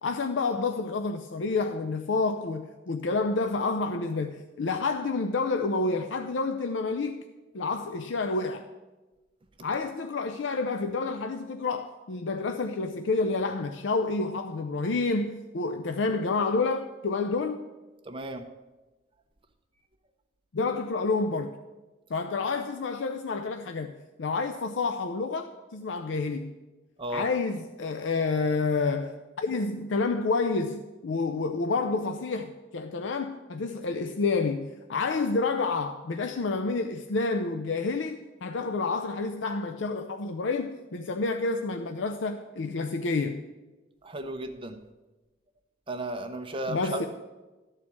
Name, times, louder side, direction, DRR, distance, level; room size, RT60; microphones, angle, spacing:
voice 1, 0.0-7.2 7.5-8.7 9.6-17.7 20.5-21.5 22.1-23.9 24.2-26.6 27.1-43.4 46.7-47.1, left 3 dB, 70° left, 0.5 m, -29 dB
voice 2, 18.0-18.4 27.0-27.3 44.0-44.8 45.9-47.1, right 2 dB, 30° right, 0.8 m, -34 dB
13.0 x 4.4 x 8.5 m
head